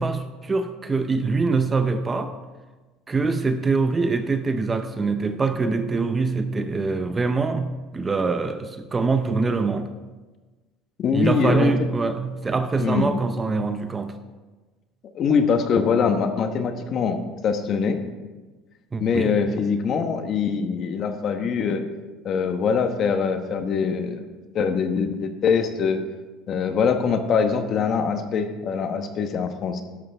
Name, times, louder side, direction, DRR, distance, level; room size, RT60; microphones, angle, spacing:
voice 1, 0.0-2.4 3.1-9.9 11.1-14.2 18.9-19.4, right 4 dB, 20° right, 9 dB, 0.6 m, -24 dB
voice 2, 11.0-11.7 12.8-13.1 15.1-18.0 19.0-21.8 22.2-24.2 24.5-26.0 26.5-29.8, left 6 dB, 40° left, 7 dB, 1.1 m, -23 dB
13.0 x 11.5 x 3.5 m, 1.3 s
cardioid pair, 140°, 0 cm